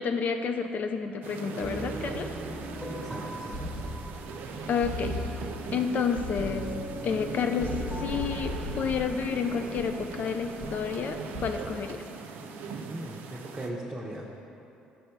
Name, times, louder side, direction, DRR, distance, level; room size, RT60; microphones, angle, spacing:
voice 1, 0.0-2.3 4.7-5.2 5.7-6.7 7.0-12.0, left 6 dB, 50° left, 6 dB, 0.3 m, -30 dB
sound 1, 1.2-13.7, right 4 dB, 65° right, 0.4 m, -40 dB
sound 2, 1.6-11.2, equal, 10° left, 1.1 m, -41 dB
voice 2, 2.9-3.7 12.9-14.4, right 1 dB, 25° right, -3 dB, 0.7 m, -39 dB
sound 3, 3.5-4.4 4.8-5.8 6.1-6.9 7.6-10.1 10.6-10.9 11.3-11.9, left 1 dB, 70° left, 1.1 m, -37 dB
5.2 x 4.8 x 4.5 m, 2.9 s
hypercardioid pair, 60°, 4 cm